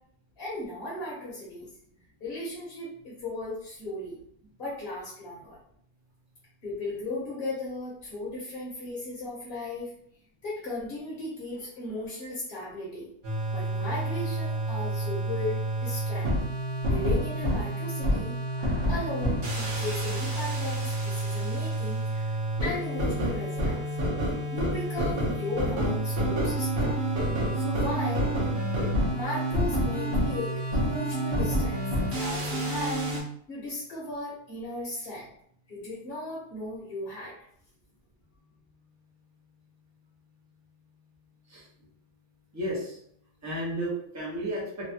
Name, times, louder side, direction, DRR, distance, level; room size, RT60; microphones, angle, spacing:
voice 1, 0.4-1.7 2.2-4.2 4.6-5.6 6.6-9.9 10.4-13.1 13.5-16.3 16.9-22.3 22.6-24.0 24.5-27.0 27.5-28.3 29.1-31.8 32.1-33.0 33.5-35.3 35.7-37.3, left 1 dB, 45° left, -6 dB, 0.9 m, -36 dB
sound 1, 13.2-33.2, right 1 dB, 40° right, 0.8 m, -28 dB
voice 2, 42.5-43.0 43.4-44.9, right 1 dB, 20° right, -5 dB, 0.4 m, -33 dB
3.1 x 2.2 x 2.7 m, 0.67 s
omnidirectional pair, 1.8 m